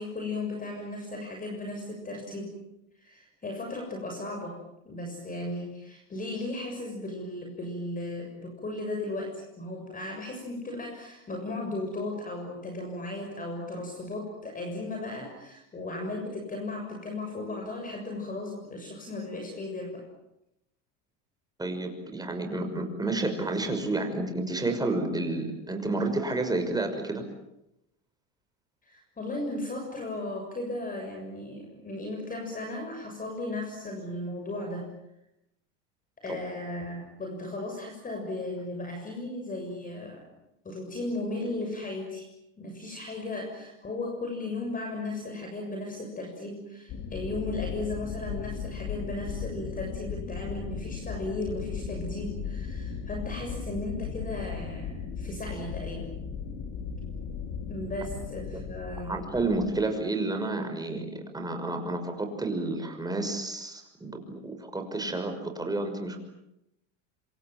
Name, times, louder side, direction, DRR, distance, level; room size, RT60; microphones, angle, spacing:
voice 1, 0.0-2.6 3.0-4.6 4.8-20.0 28.8-34.9 36.2-40.3 40.7-42.3 42.6-56.1 57.7-59.2, left 2 dB, 20° left, 2 dB, 6.9 m, -36 dB
voice 2, 21.6-27.2 36.3-36.4 58.5-58.6 59.0-66.2, right 2 dB, 10° right, 5 dB, 6.1 m, -30 dB
sound 1, 46.9-59.9, left 6 dB, 50° left, 4.0 m, -37 dB
26.5 x 26.5 x 7.5 m, 0.85 s
supercardioid pair, 110°, 37 cm